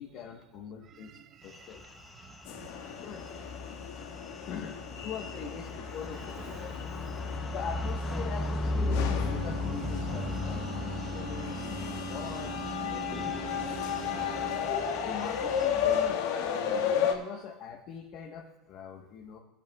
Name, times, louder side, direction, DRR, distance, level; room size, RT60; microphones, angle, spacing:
voice 1, 0.0-1.8 3.0-3.2 3.9-4.0 4.5-6.2 6.5-6.7 7.5-14.4 15.0-19.4, left 7 dB, 35° left, 1.1 m, -42 dB
voice 2, 0.8-4.5 5.6-7.5 11.6-11.7 14.5-15.0 17.2-17.4, right 8 dB, 25° right, 0.5 m, -55 dB
sound 1, 1.5-16.1, left 3 dB, 10° left, 0.7 m, -36 dB
sound 2, 2.5-17.1, left 8 dB, 55° left, 1.6 m, -34 dB
Wind instrument woodwind instrument, 8.8-14.8, right 13 dB, 55° right, 0.9 m, -42 dB
23.5 x 10.5 x 2.3 m
supercardioid pair, 170°, 0 cm